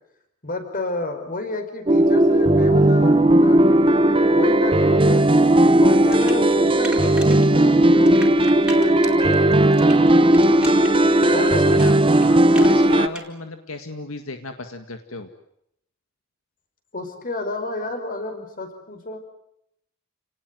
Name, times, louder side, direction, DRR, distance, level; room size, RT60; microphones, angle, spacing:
voice 1, 0.4-5.2 5.8-10.5 11.3-11.8 16.9-19.2, left 2 dB, 45° left, 7 dB, 5.4 m, -32 dB
sound 1, 1.9-13.1, right 1 dB, 25° right, 1.1 m, -16 dB
sound 2, 6.0-7.5 7.7-13.3, right 1 dB, 5° right, 4.3 m, -38 dB
voice 2, 11.2-15.3, left 3 dB, 85° left, 7 dB, 2.0 m, -34 dB
29.5 x 19.0 x 9.6 m, 0.77 s
head